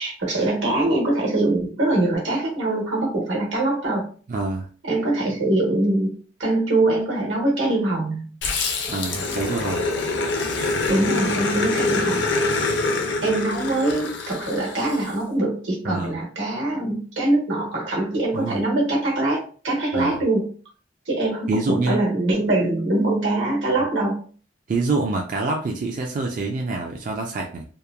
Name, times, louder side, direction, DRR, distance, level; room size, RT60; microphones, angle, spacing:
voice 1, 0.0-4.1 4.8-8.2 10.9-12.7 13.2-20.5 21.1-24.2, right 2 dB, 85° right, -2 dB, 1.0 m, -23 dB
voice 2, 4.3-4.7 8.9-9.9 11.8-12.0 15.8-16.2 18.3-18.6 19.9-20.2 21.5-22.0 24.7-27.7, right 3 dB, 45° right, 1 dB, 0.3 m, -26 dB
Growling, 8.4-15.1, left 3 dB, 65° left, 0.6 m, -25 dB
2.9 x 2.1 x 2.3 m, 0.41 s
head